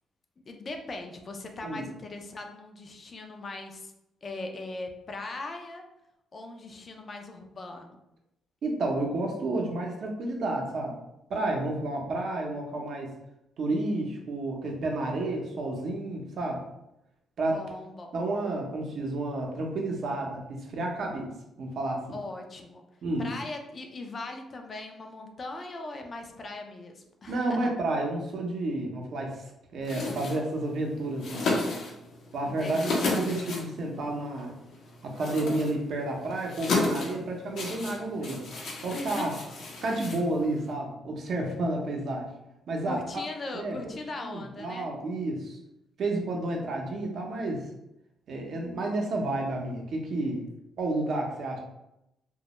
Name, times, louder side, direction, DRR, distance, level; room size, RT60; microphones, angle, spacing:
voice 1, 0.5-3.9 4.2-5.9 6.3-8.0 17.5-18.1 22.1-22.8 23.2-27.7 32.5-33.0 38.9-39.3 42.8-44.9, left 2 dB, 40° left, 3 dB, 0.4 m, -39 dB
voice 2, 8.6-11.0 11.3-13.1 13.6-16.6 17.4-17.6 18.1-21.3 21.6-22.2 23.0-23.3 27.3-29.5 29.7-31.5 32.3-34.5 35.0-38.5 38.8-39.3 39.8-42.3 42.7-43.0 43.5-43.9 44.2-45.6 46.0-47.7 48.3-50.4 50.8-51.6, right 2 dB, 60° right, 1 dB, 0.6 m, -31 dB
Napkin Dispenser, 29.8-40.7, left 3 dB, 75° left, 0.6 m, -34 dB
2.2 x 2.0 x 2.9 m, 0.86 s
cardioid pair, 90°, 0 cm